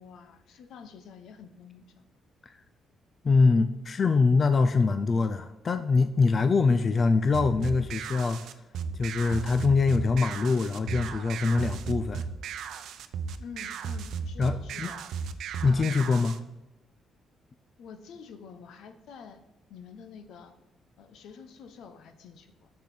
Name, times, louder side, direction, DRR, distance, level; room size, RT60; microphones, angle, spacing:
voice 1, 0.0-2.1 13.4-15.0 17.8-19.4 19.7-20.5 21.0-22.7, left 6 dB, 80° left, 9 dB, 0.9 m, -48 dB
voice 2, 3.2-8.4 9.0-12.2 14.4-14.9 15.6-16.4, left 4 dB, 40° left, 10 dB, 0.5 m, -24 dB
sound 1, 7.3-16.4, right 6 dB, 75° right, 0.6 m, -35 dB
6.7 x 6.6 x 7.6 m, 1.0 s
cardioid pair, 90°, 0 cm